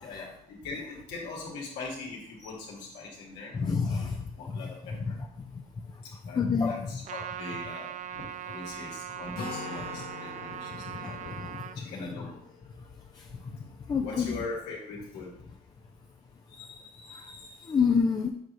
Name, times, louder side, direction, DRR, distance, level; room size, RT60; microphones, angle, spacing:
voice 1, 0.0-3.6 3.8-4.1 4.4-5.2 6.3-12.4 14.0-15.3, left 3 dB, 90° left, -3 dB, 1.9 m, -41 dB
voice 2, 3.5-4.2 4.5-4.6 5.1-5.2 6.3-6.9 10.7-11.8 13.9-14.4 16.6-16.8 17.0-18.3, left 5 dB, 25° left, 2 dB, 0.5 m, -29 dB
Trumpet, 7.1-11.8, right 10 dB, 45° right, 0.4 m, -40 dB
Acoustic guitar, 9.3-13.1, left 4 dB, 65° left, 1.7 m, -43 dB
6.8 x 4.4 x 3.1 m, 0.69 s
cardioid pair, 110°, 17 cm